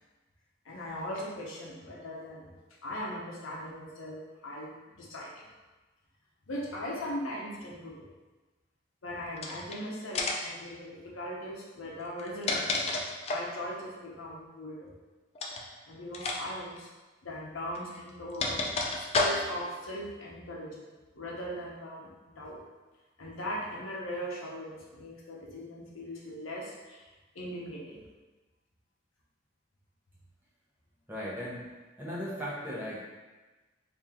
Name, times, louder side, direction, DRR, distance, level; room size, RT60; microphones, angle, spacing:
voice 1, 0.6-2.5 2.8-4.7 5.0-5.5 6.5-8.1 9.0-12.8 13.3-14.9 15.9-16.9 17.2-18.6 18.9-22.6 23.2-27.1 27.3-28.0, equal, 90° left, -3 dB, 0.8 m, -39 dB
sound 1, 9.4-9.8 10.1-10.6 12.0-13.5 15.3-15.6 16.1-16.4 16.7-16.8 17.7-19.7, left 2 dB, 30° left, 0.3 m, -31 dB
voice 2, 31.1-31.7 32.0-33.0, equal, 10° right, -7 dB, 0.7 m, -37 dB
2.9 x 2.7 x 3.6 m, 1.2 s
head